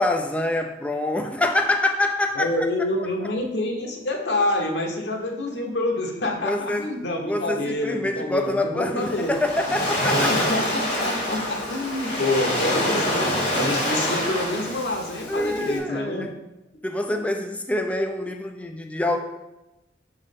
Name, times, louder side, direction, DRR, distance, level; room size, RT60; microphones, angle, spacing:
voice 1, 0.0-2.7 6.4-6.9 7.3-10.5 15.3-16.3 16.8-19.2, left 1 dB, 10° left, 3 dB, 0.4 m, -25 dB
voice 2, 2.3-9.3 10.3-16.3, left 2 dB, 85° left, 0 dB, 1.2 m, -27 dB
Waves surf, 9.0-15.8, left 1 dB, 40° left, 2.5 m, -26 dB
6.5 x 3.6 x 5.3 m, 0.98 s
head